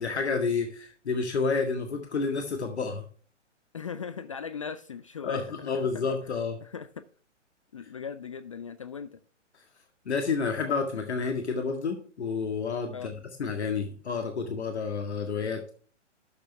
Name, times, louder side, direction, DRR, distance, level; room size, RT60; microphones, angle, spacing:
voice 1, 0.0-3.1 5.2-6.6 10.1-13.1 13.4-15.6, left 4 dB, 65° left, 4 dB, 1.9 m, -30 dB
voice 2, 3.7-6.1 6.6-7.0 7.7-9.2 12.9-13.1, left 6 dB, 30° left, 14 dB, 0.4 m, -38 dB
12.0 x 6.8 x 3.4 m, 0.42 s
figure-of-eight pair, 125°, 36 cm